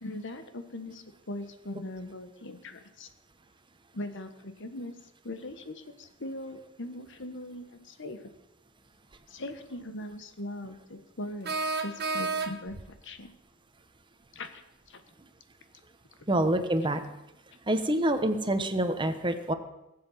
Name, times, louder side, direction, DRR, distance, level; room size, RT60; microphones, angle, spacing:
voice 1, 0.0-3.1 3.9-4.9 5.2-8.3 9.3-13.3 14.3-14.6 14.9-15.0, left 1 dB, 60° left, 8 dB, 1.4 m, -40 dB
sound 1, 9.1-9.2 11.4-12.9, right 3 dB, 50° right, 1.1 m, -31 dB
voice 2, 16.3-17.0 17.7-19.5, right 1 dB, 25° right, 8 dB, 1.2 m, -26 dB
19.0 x 7.8 x 7.4 m, 0.91 s
head